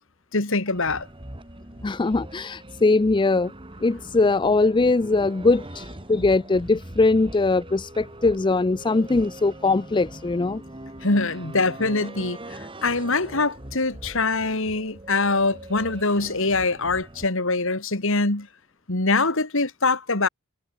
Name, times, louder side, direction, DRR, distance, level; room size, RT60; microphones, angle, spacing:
voice 1, 0.3-1.1 11.0-18.5 18.9-20.3, left 3 dB, 65° left, 3.0 m, -24 dB
sound 1, 0.7-17.3, right 1 dB, 25° right, 3.6 m, -41 dB
voice 2, 1.8-3.5 3.8-10.6, left 3 dB, 20° left, 0.4 m, -21 dB
head